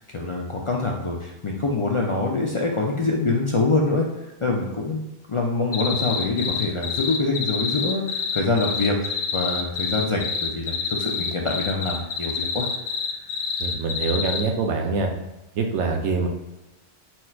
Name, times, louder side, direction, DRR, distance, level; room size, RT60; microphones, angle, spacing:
voice 1, 0.1-4.1 4.4-12.7, left 3 dB, 55° left, -1 dB, 0.3 m, -25 dB
sound 1, 5.7-14.4, left 6 dB, 80° left, 0.9 m, -27 dB
voice 2, 13.6-15.1 15.6-16.3, right 4 dB, 80° right, 3 dB, 1.0 m, -24 dB
4.3 x 2.4 x 4.3 m, 1.0 s
omnidirectional pair, 1.2 m